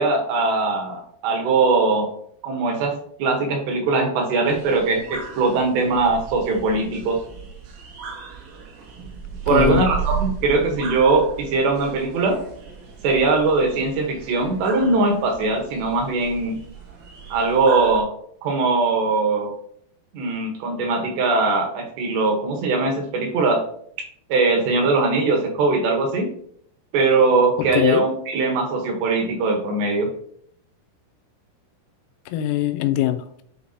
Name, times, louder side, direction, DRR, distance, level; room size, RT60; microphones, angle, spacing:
voice 1, 0.0-2.1 2.4-2.9 3.2-7.2 9.5-12.4 13.0-16.6 17.3-18.1 18.4-19.5 20.1-23.6 24.3-26.3 26.9-30.1, right 3 dB, 70° right, 3 dB, 2.8 m, -21 dB
sound 1, 4.5-18.0, right 6 dB, 90° right, 4.1 m, -35 dB
voice 2, 9.5-9.8 27.7-28.0 32.3-33.4, left 13 dB, 90° left, 9 dB, 3.3 m, -21 dB
11.5 x 4.6 x 2.8 m, 0.65 s
omnidirectional pair, 5.9 m